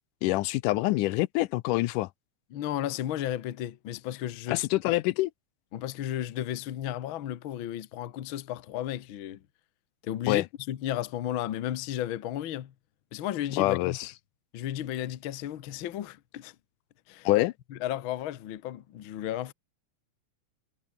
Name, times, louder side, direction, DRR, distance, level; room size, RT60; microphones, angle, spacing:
voice 1, 0.2-2.1 4.5-5.3 10.3-10.4 13.6-13.9 17.3-17.5, left 18 dB, 85° left, 2.2 m, -25 dB
voice 2, 2.5-4.7 5.7-9.4 10.0-12.7 13.1-14.0 14.5-16.5 17.1-17.3 17.7-19.5, left 12 dB, 60° left, 1.4 m, -34 dB
omnidirectional pair, 3.7 m